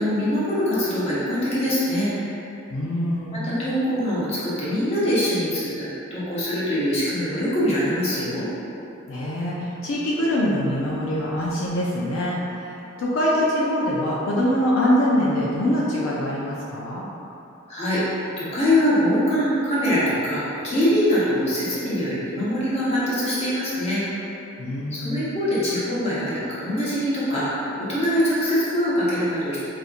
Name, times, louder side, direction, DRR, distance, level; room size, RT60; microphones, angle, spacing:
voice 1, 0.0-2.3 3.3-8.5 17.7-24.0 24.9-29.6, equal, 30° left, -10 dB, 0.9 m, -23 dB
voice 2, 2.7-3.4 9.1-17.1 24.6-25.3, equal, 75° left, -5 dB, 0.4 m, -24 dB
4.2 x 2.5 x 2.5 m, 2.8 s
head